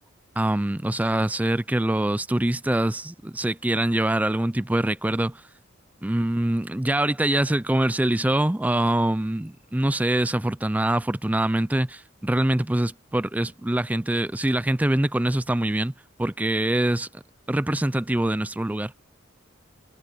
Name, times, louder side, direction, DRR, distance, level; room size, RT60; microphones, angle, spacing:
voice 1, 0.4-5.4 6.0-15.9 16.2-17.2 17.5-18.9, right 1 dB, 5° right, 0.4 m, -24 dB
head